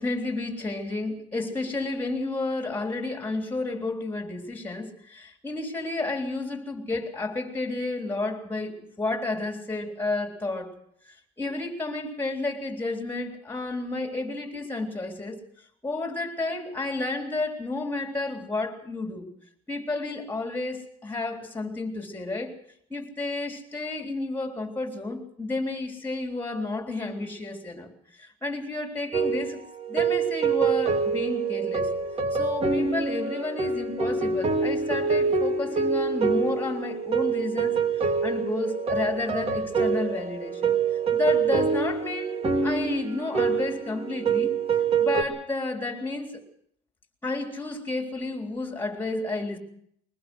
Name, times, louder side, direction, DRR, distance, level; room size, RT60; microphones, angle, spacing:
voice 1, 0.0-10.8 11.1-15.4 15.8-19.3 19.7-22.5 22.9-29.6 29.9-31.9 32.3-40.7 41.1-44.5 45.0-46.4 47.2-49.6, left 2 dB, 10° left, 3.7 m, -31 dB
sound 1, 29.1-45.2, right 5 dB, 30° right, 2.2 m, -26 dB
22.0 x 20.0 x 6.3 m
cardioid pair, 135°, 20 cm